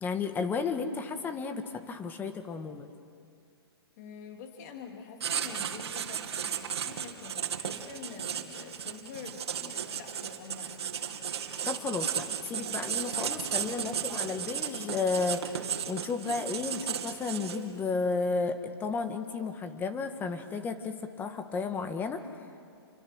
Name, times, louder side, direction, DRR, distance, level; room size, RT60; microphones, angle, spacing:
voice 1, 0.0-2.9 11.6-22.3, left 4 dB, 15° left, 8 dB, 1.6 m, -33 dB
voice 2, 4.0-10.9, left 6 dB, 40° left, 4 dB, 3.0 m, -46 dB
Writing, 5.2-17.8, right 8 dB, 75° right, 2.5 m, -35 dB
29.0 x 24.0 x 6.4 m, 2.3 s
hypercardioid pair, 150°, 14 cm